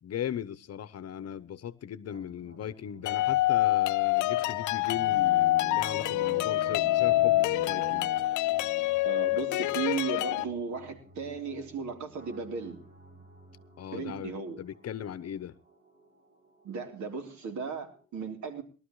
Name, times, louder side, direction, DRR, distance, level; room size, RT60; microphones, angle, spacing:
voice 1, 0.0-8.1 13.8-15.5, left 10 dB, 55° left, 0.9 m, -38 dB
sound 1, 2.0-18.0, right 2 dB, 30° right, 7.7 m, -56 dB
sound 2, 3.1-10.4, left 17 dB, 80° left, 0.6 m, -26 dB
Bowed string instrument, 4.9-9.1, right 4 dB, 90° right, 1.9 m, -44 dB
voice 2, 9.0-12.8 13.9-14.6 16.6-18.6, right 5 dB, 70° right, 3.7 m, -35 dB
21.5 x 12.5 x 3.2 m
cardioid pair, 90°, 30 cm